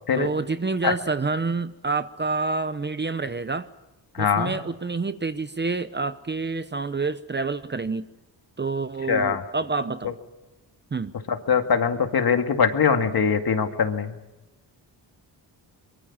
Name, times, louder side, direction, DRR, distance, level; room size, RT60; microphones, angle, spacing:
voice 1, 0.2-3.7 4.2-8.0 8.6-10.2 10.9-11.1, right 4 dB, 25° right, 12 dB, 0.8 m, -28 dB
voice 2, 4.1-4.5 9.1-9.4 11.3-14.1, left 6 dB, 55° left, 6 dB, 2.2 m, -22 dB
24.0 x 23.5 x 7.3 m, 1.0 s
wide cardioid pair, 115°, 43 cm